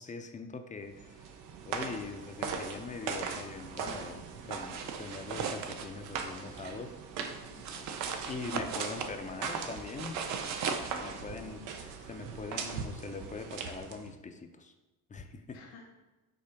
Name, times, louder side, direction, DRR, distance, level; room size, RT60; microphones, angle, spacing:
voice 1, 0.0-1.3 1.6-7.0 8.3-10.2 11.0-14.7 15.1-15.6, left 4 dB, 20° left, 7 dB, 0.4 m, -42 dB
sound 1, 0.9-14.2, right 6 dB, 90° right, 0.9 m, -40 dB
voice 2, 4.5-4.9 7.5-7.9 11.0-11.8 15.5-15.8, left 5 dB, 90° left, -4 dB, 1.6 m, -54 dB
sound 2, 4.6-6.1 7.7-9.2 9.9-10.9, right 5 dB, 45° right, 0.7 m, -37 dB
5.7 x 3.7 x 5.2 m, 1.2 s
cardioid pair, 130°, 40 cm